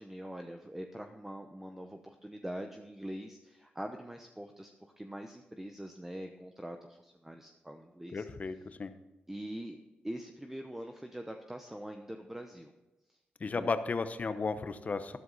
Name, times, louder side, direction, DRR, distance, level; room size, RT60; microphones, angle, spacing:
voice 1, 0.0-8.2 9.3-9.8 10.0-12.7 13.1-13.2 13.5-13.7, right 1 dB, 10° right, 5 dB, 0.9 m, -43 dB
voice 2, 8.1-8.9 13.4-15.2, left 4 dB, 40° left, 11 dB, 0.9 m, -34 dB
12.5 x 11.0 x 4.1 m, 1.0 s
cardioid pair, 85°, 4 cm